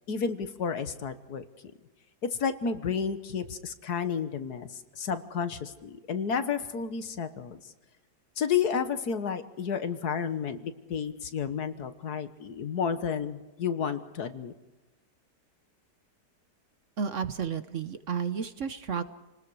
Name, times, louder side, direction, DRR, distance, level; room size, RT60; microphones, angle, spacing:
voice 1, 0.1-1.5 2.2-7.6 8.4-14.5, left 6 dB, 65° left, 10 dB, 1.8 m, -31 dB
voice 2, 17.0-19.0, right 6 dB, 55° right, 11 dB, 1.1 m, -32 dB
29.0 x 19.5 x 4.8 m, 1.1 s
omnidirectional pair, 1.8 m